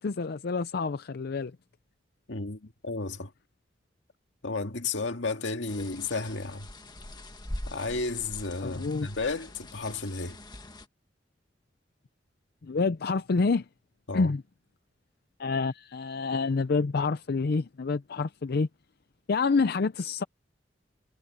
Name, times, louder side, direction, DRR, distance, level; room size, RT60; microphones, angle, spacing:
voice 1, 0.0-1.5 8.6-9.1 12.6-13.6 14.1-14.4 15.4-18.7 19.3-20.2, left 4 dB, 60° left, 0.5 m, -27 dB
voice 2, 2.3-3.3 4.4-6.7 7.7-10.4 14.1-14.3, left 3 dB, 85° left, 2.0 m, -33 dB
sound 1, 5.7-10.9, left 1 dB, 25° left, 1.8 m, -43 dB
head